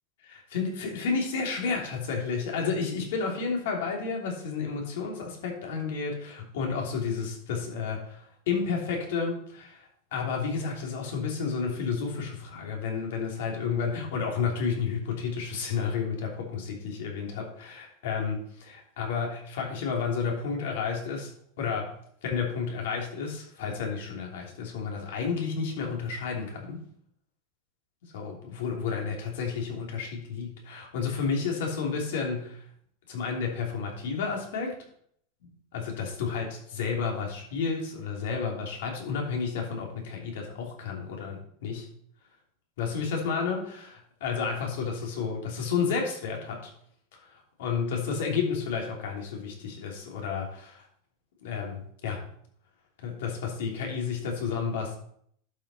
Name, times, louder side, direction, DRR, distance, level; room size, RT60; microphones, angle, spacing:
voice 1, 0.2-21.3 21.6-21.9 22.2-26.8 28.1-32.6 33.1-34.7 35.7-41.9 42.8-46.7 47.2-50.8 51.4-52.2 53.0-55.0, left 5 dB, 75° left, 0 dB, 2.9 m, -31 dB
11.5 x 5.7 x 4.3 m, 0.66 s
supercardioid pair, 160°, 0 cm